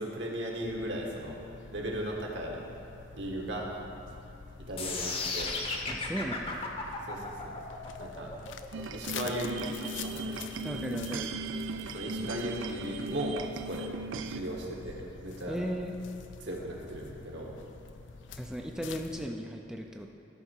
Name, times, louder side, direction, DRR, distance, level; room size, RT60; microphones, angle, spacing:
voice 1, 0.0-1.4 1.7-2.6 3.1-3.7 4.7-5.5 7.1-7.2 7.5-7.6 8.0-8.3 8.9-9.8 10.1-10.4 11.9-13.3 13.7-13.9 14.3-15.6 16.4-17.5, right 1 dB, 65° right, -1 dB, 1.5 m, -36 dB
sound 1, 0.6-19.3, left 5 dB, 70° left, 0.4 m, -47 dB
sound 2, 4.8-10.8, left 3 dB, 30° left, 0.8 m, -36 dB
voice 2, 5.9-6.5 10.6-11.3 15.5-15.9 18.3-20.1, equal, 5° right, 1 dB, 0.4 m, -36 dB
sound 3, 8.7-14.4, right 3 dB, 85° right, 0.4 m, -37 dB
13.0 x 5.6 x 4.5 m, 2.6 s
head